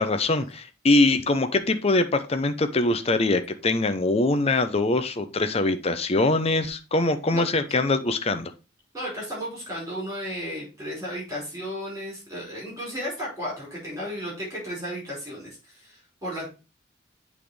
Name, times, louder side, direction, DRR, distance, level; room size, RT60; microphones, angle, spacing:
voice 1, 0.0-8.5, left 2 dB, 35° left, 9 dB, 0.7 m, -23 dB
voice 2, 8.9-16.5, equal, 20° right, -5 dB, 4.9 m, -34 dB
8.2 x 3.6 x 4.9 m, 0.31 s
head